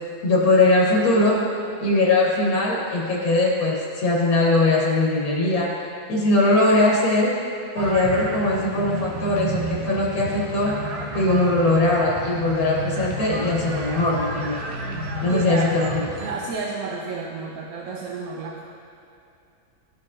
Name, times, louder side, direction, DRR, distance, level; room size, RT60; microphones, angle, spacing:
voice 1, 0.2-1.4 1.8-5.7 6.1-7.3 7.7-10.7 11.1-14.6 15.2-16.1, left 2 dB, 90° left, -4 dB, 1.5 m, -20 dB
sound 1, 7.8-16.3, right 1 dB, 55° right, 0.9 m, -31 dB
voice 2, 15.3-15.7 16.2-18.6, right 4 dB, 80° right, -2 dB, 1.1 m, -31 dB
13.0 x 4.6 x 2.4 m, 2.6 s
omnidirectional pair, 1.5 m